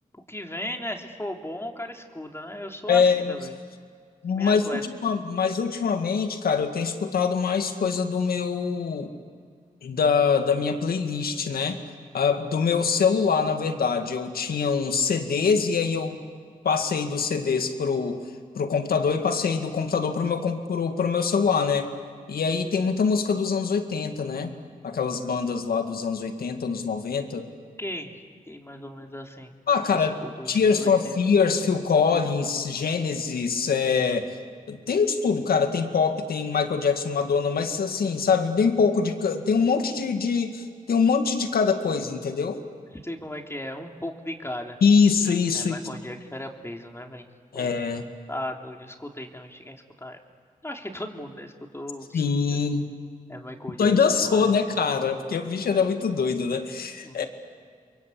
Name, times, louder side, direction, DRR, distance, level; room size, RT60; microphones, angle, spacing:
voice 1, 0.1-3.5 4.3-4.8 27.8-28.1 28.5-29.5 29.9-31.2 43.0-44.8 45.5-47.3 47.5-47.8 48.3-50.2 50.6-52.2 53.3-53.9 54.2-54.5 57.0-57.3, left 1 dB, 15° left, 2 dB, 3.6 m, -36 dB
voice 2, 2.9-3.3 4.2-4.6 5.0-9.1 9.8-11.8 12.1-16.2 16.6-18.2 18.5-21.9 22.3-24.5 24.8-27.4 29.7-30.2 30.5-34.4 34.7-42.6 44.8-45.8 47.5-48.0 52.1-52.9 53.8-57.2, left 5 dB, 85° left, 6 dB, 2.0 m, -24 dB
29.0 x 23.0 x 8.3 m, 2.1 s
cardioid pair, 45°, 15 cm